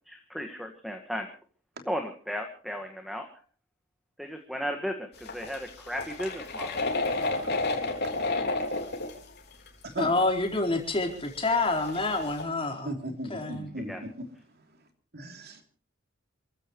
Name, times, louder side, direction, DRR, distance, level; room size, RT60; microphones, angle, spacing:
voice 1, 0.1-1.3 1.9-3.3 4.2-6.8 13.9-14.0, equal, ahead, 1.7 m, -35 dB
sound 1, 5.3-9.1 9.7-9.8 10.2-10.3 11.0-11.1 11.4-12.4, left 2 dB, 55° left, 3.7 m, -30 dB
voice 2, 10.0-12.9 13.3-13.7, left 2 dB, 25° left, 4.4 m, -27 dB
voice 3, 12.8-14.3 14.5-14.8 15.1-15.6, right 1 dB, 55° right, 3.1 m, -37 dB
28.5 x 15.5 x 3.1 m
head